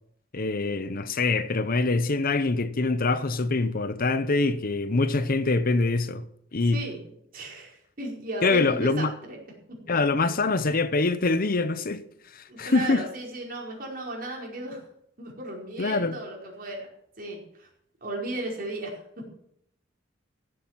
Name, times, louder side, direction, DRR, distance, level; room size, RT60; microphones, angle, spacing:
voice 1, 0.3-6.3 6.5-6.8 8.4-9.1 9.9-12.0 12.3-13.0 15.8-16.2, left 3 dB, 50° left, 0.8 m, -24 dB
voice 2, 6.7-7.0 7.3-9.4 12.5-14.8 15.2-16.9 17.2-17.7 18.0-19.2, right 2 dB, 50° right, 4.9 m, -35 dB
15.5 x 8.3 x 7.4 m
head